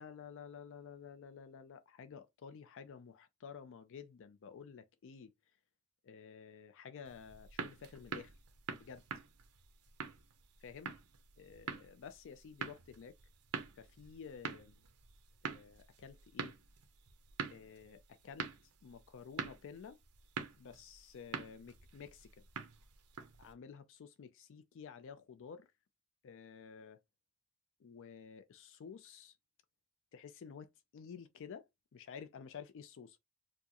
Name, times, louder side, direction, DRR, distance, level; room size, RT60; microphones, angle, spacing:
voice 1, 0.0-5.3 6.0-8.3 8.7-9.0 10.6-11.0 11.4-13.2 13.8-14.8 15.4-16.5 17.5-18.5 18.8-20.0 20.6-22.4 23.4-25.7 26.2-27.0 27.8-29.4 30.1-33.2, left 6 dB, 60° left, 0.4 m, -52 dB
sound 1, 7.0-23.5, right 5 dB, 80° right, 0.8 m, -46 dB
4.5 x 2.1 x 2.9 m
head